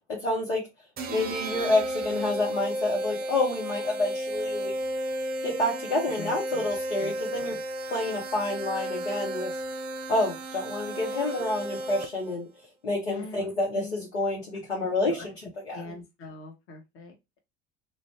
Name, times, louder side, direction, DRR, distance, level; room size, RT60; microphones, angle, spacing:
voice 1, 0.2-0.6 1.1-4.7 5.4-7.6 7.9-9.5 10.1-12.5 12.8-15.3 15.6-16.0, left 2 dB, 90° left, 0.8 m, -28 dB
sound 1, 1.0-12.4, right 1 dB, 30° right, 0.5 m, -33 dB
voice 2, 7.0-7.6 13.0-13.9 14.5-14.6 15.0-15.3 15.7-17.4, left 4 dB, 40° left, 0.9 m, -42 dB
2.5 x 2.1 x 3.2 m
hypercardioid pair, 65°, 33 cm